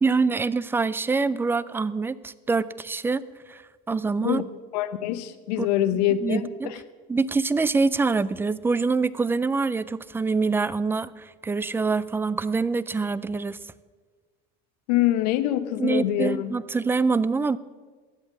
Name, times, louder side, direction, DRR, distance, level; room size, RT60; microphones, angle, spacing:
voice 1, 0.0-3.2 3.5-3.6 3.9-4.4 5.6-5.7 6.2-6.7 7.1-13.6 15.8-17.6, right 4 dB, 10° right, 18 dB, 0.3 m, -25 dB
voice 2, 4.7-6.8 14.9-16.5, left 13 dB, 85° left, 11 dB, 0.9 m, -25 dB
13.0 x 8.7 x 7.2 m, 1.4 s
supercardioid pair, 120°, 21 cm